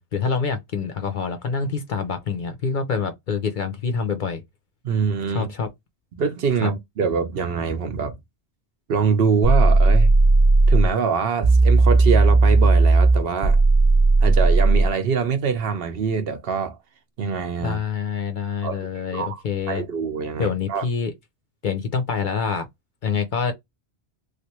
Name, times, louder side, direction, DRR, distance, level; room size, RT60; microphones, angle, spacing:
voice 1, 0.0-4.4 5.3-5.7 6.6-6.7 17.6-19.8 20.4-21.1 21.6-22.7 23.0-23.5, left 5 dB, 50° left, 0.7 m, -26 dB
voice 2, 4.8-5.5 6.2-8.1 8.9-10.1 10.7-13.6 14.2-16.8 17.2-17.8 18.6-19.4 19.7-20.8, right 6 dB, 60° right, 0.8 m, -24 dB
sound 1, 9.4-10.9 11.4-14.9, right 3 dB, 40° right, 0.4 m, -15 dB
3.3 x 2.4 x 3.0 m
omnidirectional pair, 1.2 m